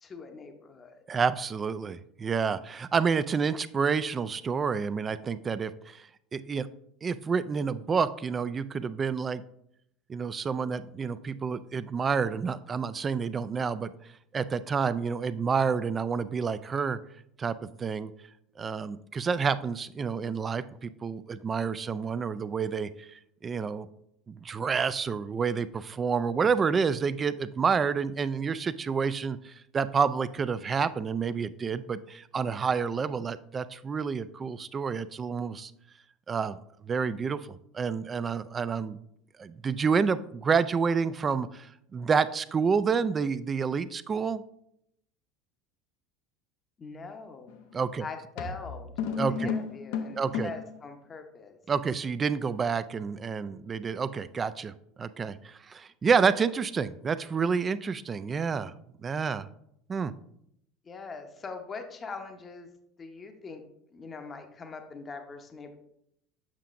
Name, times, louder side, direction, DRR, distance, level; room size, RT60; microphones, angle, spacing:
voice 1, 0.0-1.0 46.8-47.6 48.0-48.9 49.3-51.6 60.8-62.7 63.0-63.6 63.9-65.7, left 4 dB, 30° left, 6 dB, 0.8 m, -42 dB
voice 2, 1.1-6.7 7.0-9.4 10.1-13.9 14.3-17.0 17.4-18.1 18.6-23.9 24.3-35.7 36.3-36.6 36.8-39.0 39.4-44.4 47.7-48.0 49.2-49.5 50.2-50.5 51.7-58.7 59.0-59.5 59.9-60.1, right 5 dB, 30° right, 14 dB, 0.3 m, -29 dB
sound 1, 47.5-47.7 48.4-50.8, left 6 dB, 75° left, 0.6 m, -33 dB
7.3 x 5.6 x 2.5 m, 0.75 s
supercardioid pair, 95°, 0 cm